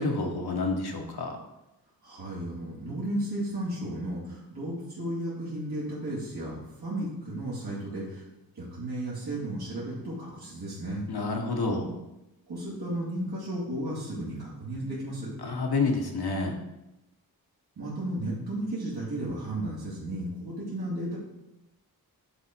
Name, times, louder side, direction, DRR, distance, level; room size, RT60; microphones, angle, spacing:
voice 1, 0.0-1.4 11.1-11.9 15.4-16.5, left 3 dB, 85° left, 3 dB, 1.3 m, -28 dB
voice 2, 2.0-8.2 8.5-11.0 12.5-15.3 17.8-21.2, right 1 dB, 85° right, -8 dB, 2.3 m, -34 dB
9.7 x 3.8 x 4.5 m, 0.93 s
wide cardioid pair, 70°, 37 cm